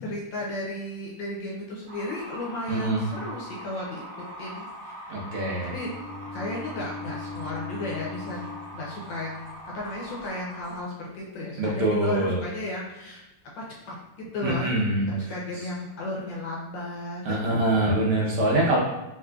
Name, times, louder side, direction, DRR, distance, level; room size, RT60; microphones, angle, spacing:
voice 1, 0.0-4.0 4.4-5.3 5.6-5.9 6.3-13.2 13.6-14.0 14.3-14.8 15.0-17.4, left 1 dB, 70° left, -4 dB, 1.2 m, -34 dB
sound 1, 1.9-10.8, right 1 dB, 45° right, 1.9 m, -42 dB
voice 2, 2.7-3.1 5.1-5.7 11.6-12.4 14.4-15.1 17.3-18.8, right 1 dB, 80° right, -3 dB, 1.8 m, -24 dB
Bowed string instrument, 5.4-9.5, left 4 dB, 90° left, 1.9 m, -40 dB
4.7 x 2.5 x 2.3 m, 0.99 s
omnidirectional pair, 2.4 m